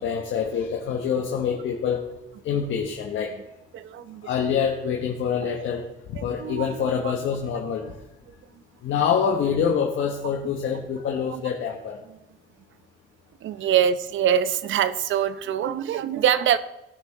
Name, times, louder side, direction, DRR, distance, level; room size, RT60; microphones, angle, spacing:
voice 1, 0.0-2.0 2.4-3.3 4.2-7.9 8.8-12.0, left 7 dB, 75° left, 0 dB, 1.3 m, -26 dB
voice 2, 3.7-4.3 5.4-5.6 6.2-7.1 11.3-11.4 13.4-16.6, right 9 dB, 75° right, 13 dB, 0.8 m, -24 dB
17.5 x 6.4 x 3.7 m, 0.92 s
cardioid pair, 90°, 20 cm